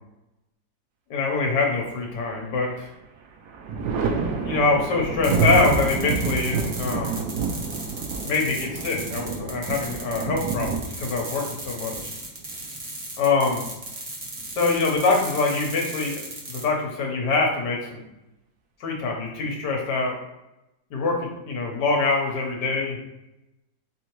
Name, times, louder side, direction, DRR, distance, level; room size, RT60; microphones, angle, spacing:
voice 1, 1.1-2.9 4.4-7.2 8.2-12.1 13.2-13.6 14.5-16.2 16.5-18.0 18.8-20.2 20.9-23.0, left 3 dB, 65° left, 0 dB, 1.5 m, -24 dB
Thunder, 2.0-2.8 3.2-12.8 14.3-15.1, right 4 dB, 70° right, 0.9 m, -28 dB
sound 1, 5.2-16.6, right 2 dB, 50° right, 0.4 m, -36 dB
3.7 x 3.6 x 3.0 m, 0.93 s
omnidirectional pair, 2.1 m